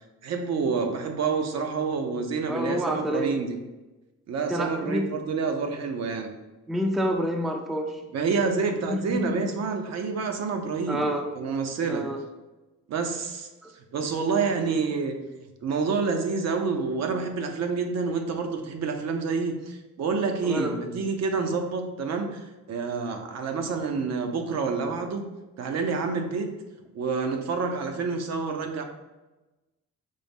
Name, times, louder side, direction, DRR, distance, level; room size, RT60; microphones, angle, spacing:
voice 1, 0.2-3.5 4.3-6.3 8.1-11.1 11.3-12.1 12.9-13.5 13.9-15.2 15.6-25.2 25.6-26.5 26.9-28.8, right 4 dB, 60° right, 4 dB, 0.6 m, -28 dB
voice 2, 2.5-3.3 4.5-5.1 6.7-8.0 8.9-9.4 10.9-11.3 11.9-12.2 13.6-13.7 20.4-20.8, equal, ahead, 3 dB, 0.4 m, -28 dB
5.2 x 2.0 x 3.4 m, 1.1 s
cardioid pair, 90°, 30 cm